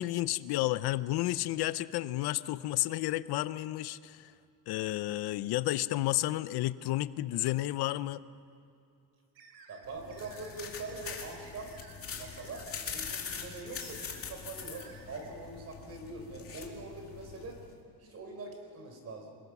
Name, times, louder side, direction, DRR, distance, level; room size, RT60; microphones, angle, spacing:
voice 1, 0.0-4.3 4.7-8.2, left 16 dB, 75° left, 16 dB, 0.7 m, -31 dB
sound 1, 9.3-15.3, right 5 dB, 75° right, 3.6 m, -55 dB
voice 2, 9.7-11.7 12.2-17.6 18.0-19.4, right 3 dB, 40° right, 4 dB, 4.1 m, -43 dB
sound 2, 9.8-17.7, left 6 dB, 35° left, 2.4 m, -43 dB
26.5 x 21.0 x 6.0 m, 2.6 s
cardioid pair, 175°, 39 cm